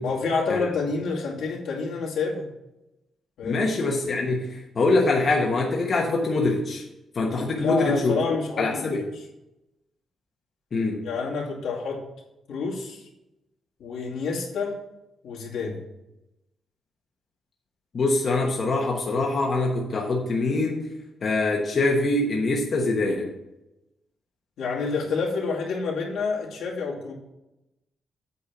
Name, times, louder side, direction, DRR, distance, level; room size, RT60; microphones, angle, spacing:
voice 1, 0.0-2.5 3.4-3.7 7.6-9.0 11.0-12.0 12.5-13.1 13.8-14.7 15.2-15.8 24.6-27.1, left 4 dB, 85° left, -4 dB, 2.4 m, -28 dB
voice 2, 3.4-6.8 7.1-9.1 10.7-11.0 17.9-20.9 21.2-23.3, left 2 dB, 35° left, -1 dB, 1.2 m, -24 dB
8.4 x 4.4 x 6.9 m, 0.92 s
wide cardioid pair, 165°, 0 cm